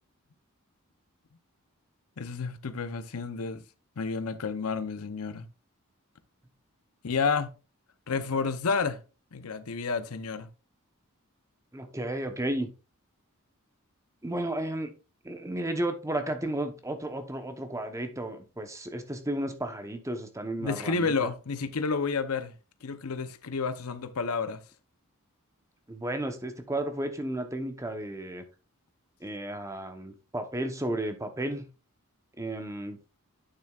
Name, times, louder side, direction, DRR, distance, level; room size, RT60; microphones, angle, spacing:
voice 1, 2.2-3.6 4.0-5.5 7.0-7.5 8.1-9.0 9.3-10.5 20.6-22.5 22.8-24.6, left 4 dB, 75° left, 0.7 m, -30 dB
voice 2, 11.7-12.7 14.2-14.9 15.2-21.3 25.9-28.4 29.2-31.7 32.4-33.0, right 1 dB, 15° right, 0.9 m, -33 dB
9.0 x 6.9 x 2.4 m
head